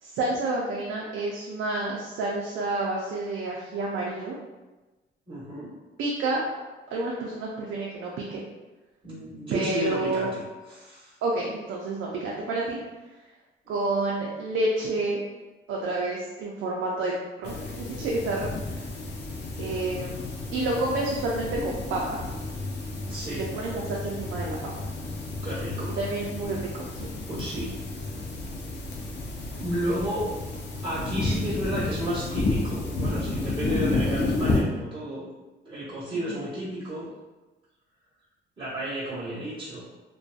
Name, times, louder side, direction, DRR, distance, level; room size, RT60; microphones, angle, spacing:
voice 1, 0.0-4.4 6.0-6.6 6.9-8.4 9.5-10.3 11.2-12.8 13.7-15.2 15.7-17.1 17.4-18.8 19.6-22.2 23.3-24.7 26.0-27.1 36.3-36.4, right 2 dB, 75° right, -3 dB, 0.4 m, -29 dB
voice 2, 5.3-5.7 9.0-10.4 10.7-11.1 13.6-13.7 23.1-23.4 25.4-26.0 27.3-27.7 29.6-30.3 30.8-35.2 35.6-37.1 38.6-39.9, equal, 25° right, -11 dB, 1.2 m, -32 dB
sound 1, 17.4-34.6, left 2 dB, 60° left, 0.5 m, -31 dB
2.5 x 2.2 x 2.3 m, 1.2 s
cardioid pair, 90°, 20 cm